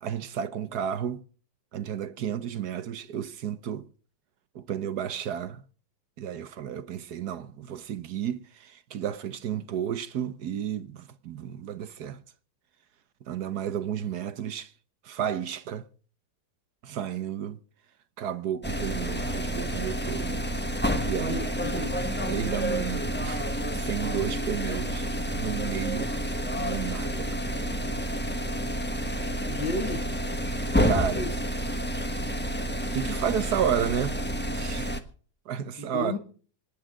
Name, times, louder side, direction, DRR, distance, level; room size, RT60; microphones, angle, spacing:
voice 1, 0.0-1.2 1.7-3.9 4.5-5.6 6.2-12.2 13.3-14.7 15.0-15.8 16.8-17.6 18.2-20.5 21.0-21.9 22.3-25.1 25.3-26.1 26.6-27.4 30.8-31.3 32.9-34.2 34.5-34.9 35.5-36.1, right 9 dB, 60° right, 1.4 m, -32 dB
sound 1, 18.6-35.0, equal, 5° left, 1.1 m, -29 dB
voice 2, 21.1-22.3 29.5-30.0 30.8-30.9 31.2-31.3 35.8-36.2, left 2 dB, 80° left, 2.8 m, -33 dB
26.5 x 10.5 x 3.8 m
omnidirectional pair, 2.1 m